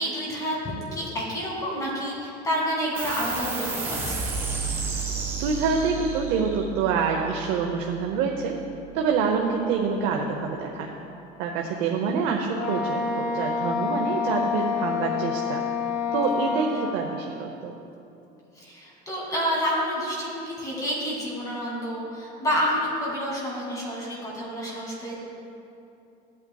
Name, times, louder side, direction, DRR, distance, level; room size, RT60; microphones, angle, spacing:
voice 1, 0.0-4.2 12.1-12.3 16.3-16.5 18.5-25.2, equal, 20° left, -4 dB, 2.2 m, -29 dB
sound 1, 2.9-9.8, right 5 dB, 10° right, 1.1 m, -33 dB
voice 2, 5.4-8.5 8.9-10.9 11.4-15.6 16.1-17.7, right 5 dB, 70° right, 1 dB, 0.8 m, -26 dB
Wind instrument woodwind instrument, 12.5-17.1, left 6 dB, 60° left, 1.3 m, -28 dB
15.5 x 8.6 x 2.3 m, 2.7 s
cardioid pair, 165°, 18 cm